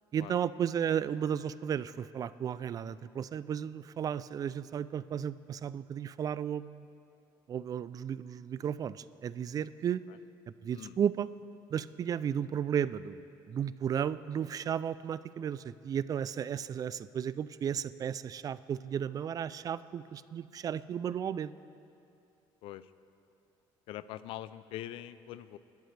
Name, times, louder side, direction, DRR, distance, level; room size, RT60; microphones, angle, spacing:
voice 1, 0.1-6.9 7.5-10.0 10.6-11.3 11.7-21.5, right 8 dB, 40° right, 16 dB, 0.4 m, -34 dB
voice 2, 23.9-25.6, left 13 dB, 75° left, 15 dB, 0.5 m, -43 dB
21.5 x 11.5 x 3.3 m, 2.6 s
cardioid pair, 105°, 9 cm